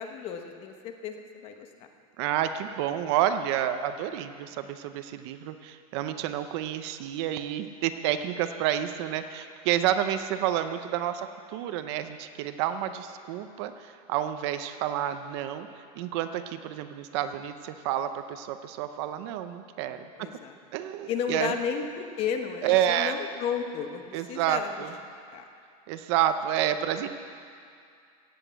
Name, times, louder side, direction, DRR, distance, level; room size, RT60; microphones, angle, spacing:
voice 1, 0.0-1.7 19.9-20.5 21.1-24.7 25.3-25.4, left 7 dB, 30° left, 6 dB, 1.0 m, -33 dB
voice 2, 2.2-20.3 20.7-21.6 22.6-23.1 24.1-24.9 25.9-27.1, right 11 dB, 45° right, 9 dB, 0.7 m, -29 dB
16.5 x 8.2 x 8.1 m, 2.3 s
supercardioid pair, 165°, 20 cm